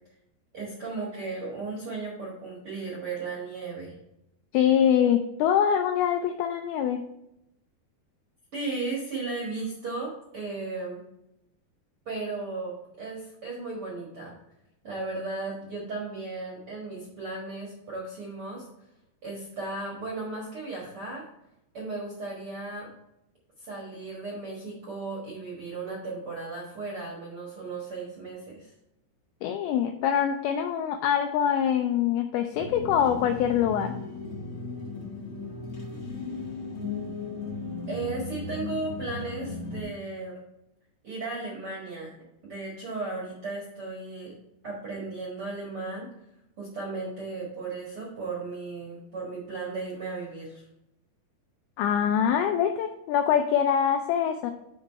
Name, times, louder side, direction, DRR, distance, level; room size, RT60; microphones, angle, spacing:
voice 1, 0.5-3.9 8.5-11.0 12.0-14.3 14.8-18.7 19.2-21.2 21.7-22.9 23.6-28.7 37.9-40.4 41.0-42.1 42.4-44.3 44.6-46.1 46.6-50.6, right 3 dB, 60° right, -3 dB, 1.4 m, -35 dB
voice 2, 4.5-7.0 29.4-34.0 51.8-54.5, left 9 dB, 85° left, 6 dB, 2.2 m, -24 dB
sound 1, 32.5-39.8, left 3 dB, 50° left, 1.2 m, -36 dB
9.6 x 3.8 x 4.5 m, 0.84 s
omnidirectional pair, 4.9 m